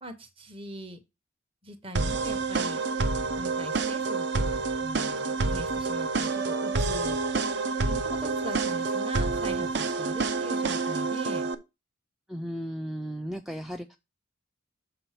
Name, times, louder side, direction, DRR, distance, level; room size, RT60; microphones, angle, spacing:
voice 1, 0.0-1.0 1.6-2.8 3.4-7.2 7.8-11.5, equal, 25° right, 9 dB, 0.9 m, -41 dB
sound 1, 1.9-11.5, right 4 dB, 55° right, 0.6 m, -28 dB
voice 2, 12.3-14.0, equal, ahead, 5 dB, 0.3 m, -35 dB
6.8 x 4.1 x 5.7 m, 0.25 s
head